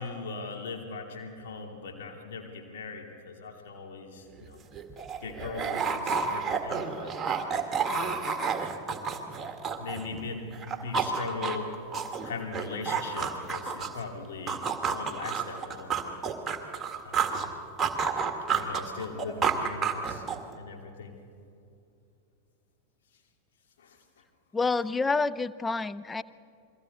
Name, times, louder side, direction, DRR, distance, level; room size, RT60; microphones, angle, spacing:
voice 1, 0.0-4.6 5.2-7.2 7.9-8.3 9.1-11.7 12.2-16.2 17.0-17.5 18.5-20.2 20.6-21.2 23.8-24.2, left 4 dB, 60° left, 2 dB, 2.6 m, -40 dB
sound 1, 4.4-4.5 4.7-10.2 10.5-14.0 14.5-17.5 17.8-20.5, right 6 dB, 15° right, 1.8 m, -30 dB
voice 2, 24.5-26.2, left 3 dB, 15° left, 16 dB, 0.5 m, -28 dB
29.0 x 22.5 x 4.2 m, 2.6 s
figure-of-eight pair, 90°, 0 cm